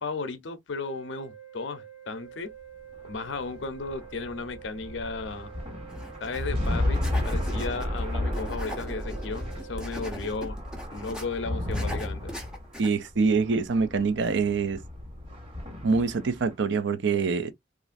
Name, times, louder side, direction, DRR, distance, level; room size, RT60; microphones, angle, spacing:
voice 1, 0.0-2.5 3.0-5.5 6.2-10.6 10.9-12.3, left 4 dB, 65° left, 0.6 m, -35 dB
sound 1, 0.7-10.4, right 9 dB, 85° right, 1.1 m, -48 dB
sound 2, 2.9-16.5, left 1 dB, 30° right, 1.4 m, -33 dB
sound 3, 5.9-6.4 6.6-8.0 8.3-11.2 11.7-12.9, equal, 5° right, 0.6 m, -41 dB
voice 2, 12.8-14.8 15.8-17.5, right 4 dB, 60° right, 0.4 m, -25 dB
3.1 x 2.5 x 2.5 m
head